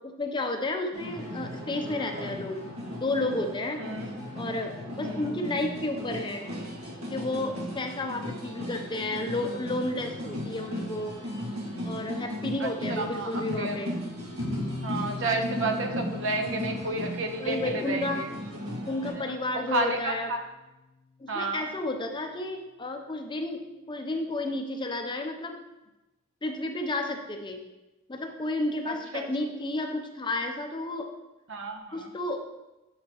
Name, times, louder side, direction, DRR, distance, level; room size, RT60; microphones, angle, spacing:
voice 1, 0.0-2.6 2.9-3.8 4.3-6.5 7.1-11.2 11.8-13.9 17.4-18.2 18.9-20.3 21.2-25.6 26.4-27.6 28.1-31.1 31.9-32.4, left 2 dB, 20° left, 4 dB, 0.6 m, -32 dB
sound 1, 0.9-19.1, equal, 80° right, 1.9 m, -36 dB
voice 2, 5.0-5.3 12.6-13.8 14.8-18.3 19.1-19.4 19.7-20.4 21.3-21.7 28.9-29.3 31.5-32.1, right 2 dB, 60° right, 4 dB, 1.0 m, -31 dB
sound 2, 14.4-20.8, left 3 dB, 75° left, 0.8 m, -42 dB
8.3 x 6.4 x 3.0 m, 1.0 s
head